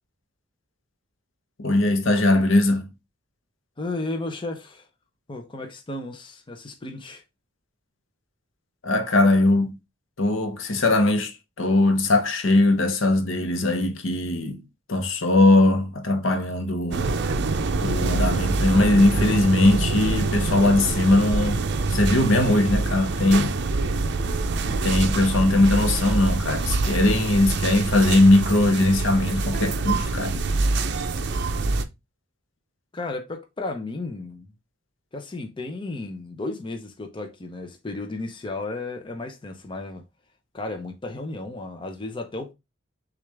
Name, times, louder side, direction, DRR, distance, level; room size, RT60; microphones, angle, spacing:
voice 1, 1.6-2.9 8.8-9.8 10.2-14.6 14.9-17.1 17.8-21.6 21.9-23.6 24.7-30.4, left 2 dB, 70° left, 0.8 m, -20 dB
voice 2, 3.8-4.9 5.3-7.2 32.9-34.5 35.1-40.0 40.5-42.5, left 2 dB, 25° left, 0.6 m, -33 dB
sound 1, 16.9-31.8, right 3 dB, 60° right, 0.5 m, -25 dB
6.3 x 2.5 x 3.3 m
head